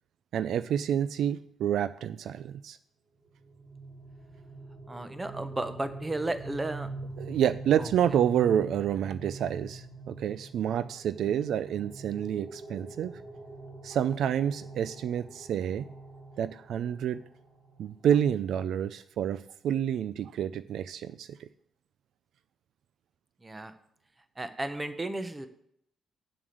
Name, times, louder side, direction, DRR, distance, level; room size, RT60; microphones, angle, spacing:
voice 1, 0.3-2.8 7.2-13.2 13.8-15.9 16.4-17.2 17.8-21.5, right 9 dB, 70° right, 14 dB, 0.3 m, -28 dB
sound 1, 3.2-17.9, right 2 dB, 55° right, 3.2 m, -44 dB
voice 2, 4.9-6.9 7.8-7.9 23.4-23.7 24.4-25.5, right 2 dB, 15° right, 9 dB, 0.9 m, -34 dB
7.2 x 6.9 x 6.4 m, 0.71 s
cardioid pair, 125°, 0 cm